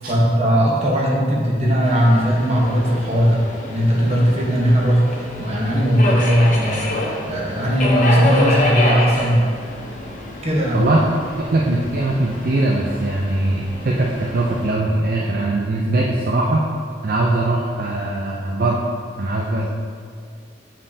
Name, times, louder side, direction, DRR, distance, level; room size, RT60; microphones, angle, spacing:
voice 1, 0.0-3.4 3.7-9.4 10.4-10.8, equal, 35° right, -4 dB, 1.2 m, -18 dB
Subway metro underground, 1.8-14.7, left 2 dB, 45° left, 0.9 m, -27 dB
voice 2, 10.7-11.0 11.3-16.6 17.0-18.9 19.2-19.7, right 2 dB, 50° right, -2 dB, 0.5 m, -21 dB
7.4 x 5.2 x 2.8 m, 2.2 s
head